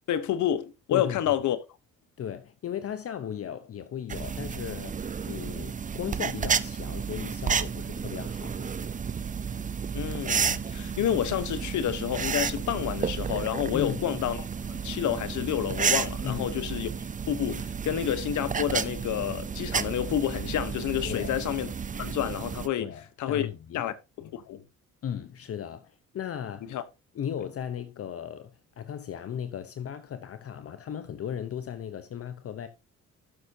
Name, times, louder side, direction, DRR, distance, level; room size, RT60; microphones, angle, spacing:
voice 1, 0.1-1.6 9.9-16.9 17.3-21.7 22.0-22.9 23.2-23.5 23.7-24.6 26.7-26.8, left 10 dB, 75° left, 1.0 m, -29 dB
voice 2, 2.2-5.0 5.3-8.8 13.7-14.0 16.2-16.5 21.0-21.4 22.8-23.8 25.0-26.7 27.1-32.7, left 9 dB, 50° left, 0.8 m, -36 dB
sound 1, 4.1-22.7, right 6 dB, 25° right, 0.6 m, -32 dB
12.5 x 6.3 x 2.7 m
cardioid pair, 90°, 30 cm